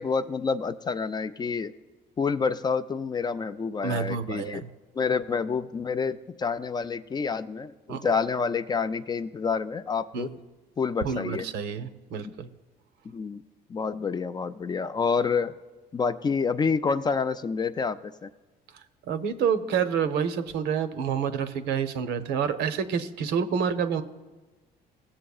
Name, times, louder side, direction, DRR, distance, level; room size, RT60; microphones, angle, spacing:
voice 1, 0.0-1.7 2.2-4.6 4.9-10.3 10.8-11.4 12.2-12.3 13.1-13.4 13.7-15.5 15.9-18.3, left 5 dB, 25° left, 11 dB, 0.3 m, -28 dB
voice 2, 3.8-4.7 7.9-8.1 10.1-10.4 11.0-12.5 19.0-24.0, right 7 dB, 85° right, 10 dB, 0.7 m, -28 dB
16.5 x 7.6 x 2.4 m, 1.3 s
cardioid pair, 110°, 17 cm